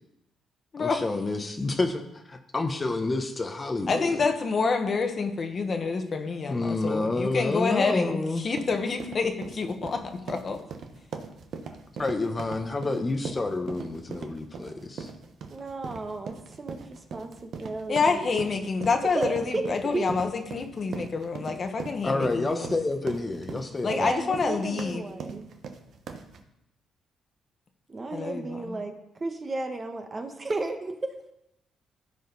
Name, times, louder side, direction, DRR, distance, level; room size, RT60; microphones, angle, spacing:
voice 1, 0.8-4.2 6.5-8.4 12.0-15.1 22.0-23.9, left 2 dB, 25° left, 5 dB, 0.9 m, -29 dB
voice 2, 3.9-10.6 17.9-22.7 23.8-25.0 28.1-28.8, left 4 dB, 45° left, 5 dB, 1.3 m, -28 dB
sound 1, 8.3-26.4, right 5 dB, 65° right, 1.0 m, -40 dB
voice 3, 15.5-18.5 19.1-20.1 22.5-22.6 23.9-25.5 27.9-28.9 29.2-31.1, right 2 dB, 30° right, 5 dB, 1.2 m, -33 dB
15.5 x 5.1 x 4.0 m, 0.84 s
cardioid pair, 90°, 0 cm